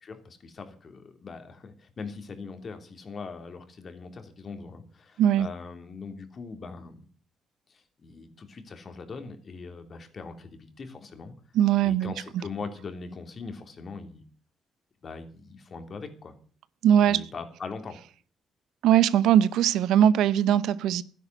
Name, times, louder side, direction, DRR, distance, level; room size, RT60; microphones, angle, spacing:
voice 1, 0.0-7.1 7.7-11.3 11.8-14.2 15.0-16.3 17.0-18.0, left 4 dB, 45° left, 7 dB, 3.2 m, -41 dB
voice 2, 11.5-12.1 16.8-17.2 18.8-21.0, right 10 dB, 85° right, 18 dB, 0.7 m, -20 dB
12.5 x 10.0 x 8.1 m, 0.43 s
cardioid pair, 90°, 0 cm